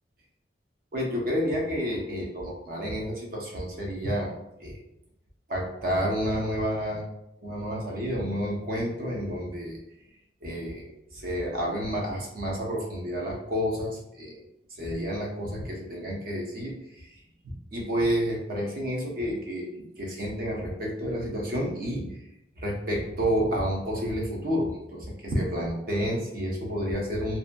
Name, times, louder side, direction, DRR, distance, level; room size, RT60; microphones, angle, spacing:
voice 1, 0.9-4.3 4.6-4.8 5.5-7.0 7.4-9.8 10.4-10.9 11.1-14.4 14.8-17.1 17.4-19.7 20.0-22.1 22.6-27.4, equal, 55° right, -1 dB, 0.7 m, -30 dB
2.7 x 2.5 x 2.2 m, 0.84 s
head